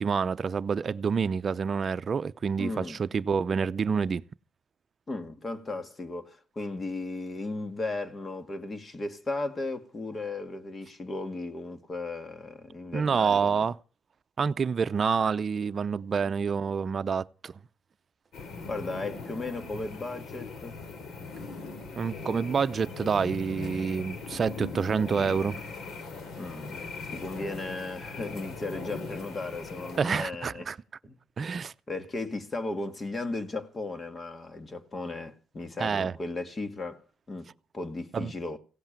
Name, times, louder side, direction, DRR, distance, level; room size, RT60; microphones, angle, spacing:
voice 1, 0.0-4.2 12.9-13.7 14.4-17.5 22.0-25.7 30.0-30.8 31.4-31.7 35.8-36.1 38.1-38.3, right 6 dB, 45° right, 0.7 m, -28 dB
voice 2, 2.6-3.0 5.1-13.7 18.7-20.8 26.4-26.8 27.1-30.7 31.0-31.2 31.9-38.6, left 2 dB, 30° left, 2.0 m, -36 dB
sound 1, 18.3-30.0, left 3 dB, 65° left, 3.5 m, -40 dB
16.5 x 7.9 x 8.9 m
cardioid pair, 90°, 0 cm